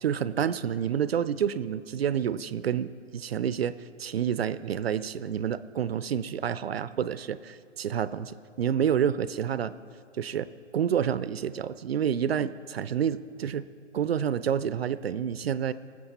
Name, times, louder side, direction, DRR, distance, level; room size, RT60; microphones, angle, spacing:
voice 1, 0.0-3.7 4.0-9.7 10.2-10.5 10.7-13.6 13.9-15.7, right 8 dB, 55° right, 15 dB, 0.5 m, -28 dB
20.5 x 7.5 x 4.2 m, 2.4 s
figure-of-eight pair, 135°, 37 cm